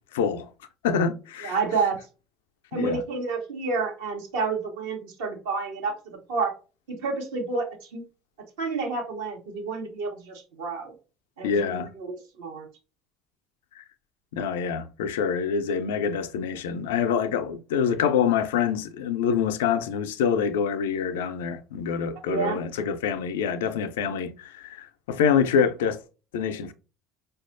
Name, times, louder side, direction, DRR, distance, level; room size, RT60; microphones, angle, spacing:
voice 1, 0.1-0.4 0.8-1.6 2.7-3.0 11.4-11.9 13.8-13.9 14.3-26.0 26.3-26.7, left 7 dB, 80° left, 0.3 m, -26 dB
voice 2, 1.4-2.0 2.7-6.5 6.9-8.0 8.6-10.9 11.4-12.7 22.2-22.6, right 4 dB, 80° right, 1.0 m, -29 dB
4.4 x 2.3 x 2.5 m
hypercardioid pair, 65°, 0 cm